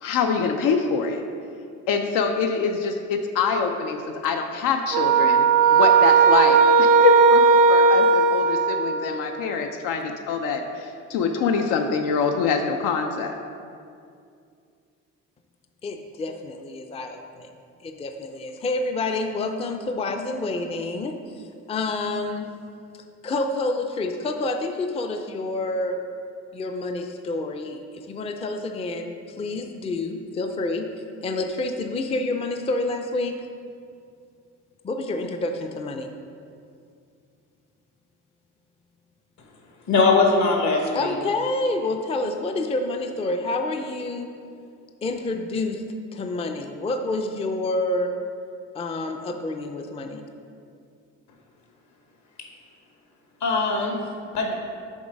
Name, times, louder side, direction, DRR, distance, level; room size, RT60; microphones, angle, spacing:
voice 1, 0.0-1.2 1.9-7.4 7.7-13.4, left 5 dB, 90° left, 4 dB, 0.5 m, -25 dB
sound 1, 4.9-9.3, right 5 dB, 80° right, 0.6 m, -17 dB
voice 2, 15.8-17.5 17.8-21.1 21.7-22.5 23.2-26.0 26.5-27.8 28.1-30.9 31.2-33.4 34.8-36.1 40.9-44.3 45.0-45.8 46.1-48.1 48.7-50.2, left 2 dB, 20° left, 5 dB, 0.4 m, -28 dB
voice 3, 39.9-41.1 53.4-54.0 54.3-54.5, left 3 dB, 65° left, 1 dB, 1.3 m, -20 dB
7.2 x 3.8 x 5.2 m, 2.4 s
cardioid pair, 120°, 31 cm